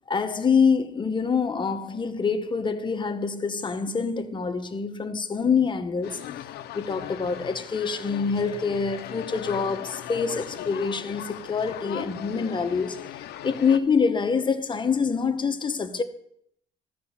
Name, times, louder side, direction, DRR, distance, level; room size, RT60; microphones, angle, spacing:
voice 1, 0.1-6.2 6.7-16.0, left 5 dB, 30° left, 1.1 m, -26 dB
sound 1, 6.0-13.8, left 12 dB, 75° left, 0.7 m, -38 dB
13.5 x 5.2 x 7.3 m
cardioid pair, 110°, 17 cm